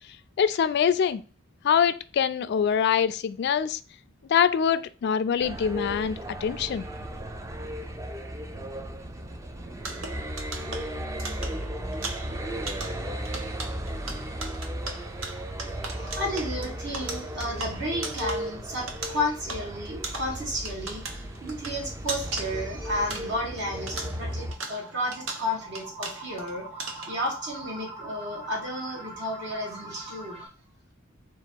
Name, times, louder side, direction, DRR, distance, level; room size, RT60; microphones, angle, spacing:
voice 1, 0.4-1.2 1.6-3.8 4.3-6.9, left 7 dB, 55° left, 0.3 m, -24 dB
sound 1, 5.4-24.5, equal, 15° right, 0.4 m, -35 dB
sound 2, 9.8-23.6 23.9-26.5 26.8-27.3, right 3 dB, 75° right, 0.9 m, -39 dB
sound 3, 10.8-12.3 12.7-12.8 13.2-13.3 13.7-13.8 18.7-30.5, right 2 dB, 35° right, 1.2 m, -46 dB
voice 2, 15.9-26.7 27.1-30.5, left 1 dB, 60° right, 1.2 m, -32 dB
3.8 x 2.4 x 4.4 m
head